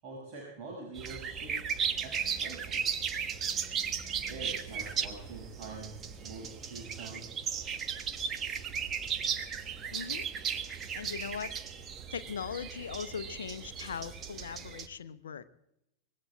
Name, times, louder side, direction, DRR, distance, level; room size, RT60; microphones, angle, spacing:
voice 1, 0.0-1.6 2.0-3.0 4.3-7.3, right 3 dB, 40° right, -3 dB, 6.1 m, -45 dB
sound 1, 0.9-14.9, right 7 dB, 25° right, 1.2 m, -36 dB
voice 2, 9.9-10.3 10.9-11.6 12.1-15.5, left 7 dB, 65° left, 14 dB, 0.8 m, -40 dB
24.5 x 20.0 x 2.4 m, 0.85 s
figure-of-eight pair, 90°, 0 cm